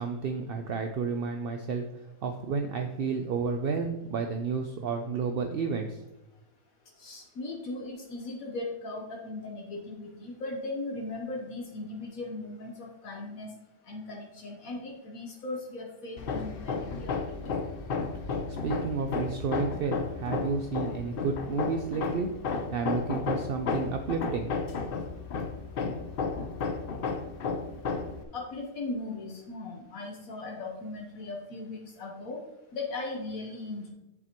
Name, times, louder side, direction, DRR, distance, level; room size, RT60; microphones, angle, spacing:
voice 1, 0.0-6.0 18.5-22.3 22.7-24.5, right 5 dB, 65° right, 5 dB, 0.6 m, -31 dB
voice 2, 7.0-13.5 13.9-17.3 28.3-32.4 32.7-33.9, left 2 dB, 75° left, 0 dB, 1.5 m, -38 dB
Hammer, 16.2-28.2, left 4 dB, 55° left, 0.7 m, -33 dB
7.9 x 7.2 x 3.0 m, 0.93 s
omnidirectional pair, 1.5 m